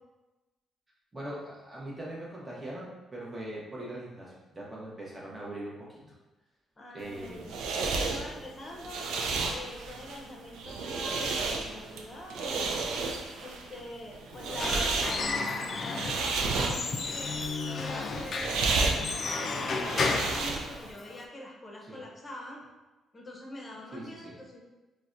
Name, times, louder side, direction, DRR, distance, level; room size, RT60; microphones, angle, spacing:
voice 1, 1.1-6.0 6.9-7.5 21.9-22.0 23.9-24.4, right 1 dB, 15° right, -6 dB, 0.7 m, -41 dB
voice 2, 6.8-9.1 9.5-12.8 13.4-17.3 17.7-22.6 23.1-24.6, left 1 dB, 30° left, -1 dB, 0.7 m, -44 dB
sound 1, 7.0-20.9, right 3 dB, 90° right, 0.3 m, -32 dB
Squeak / Wood, 14.3-21.2, left 4 dB, 50° left, 0.3 m, -33 dB
4.1 x 2.1 x 2.5 m, 1.1 s
cardioid pair, 90°, 0 cm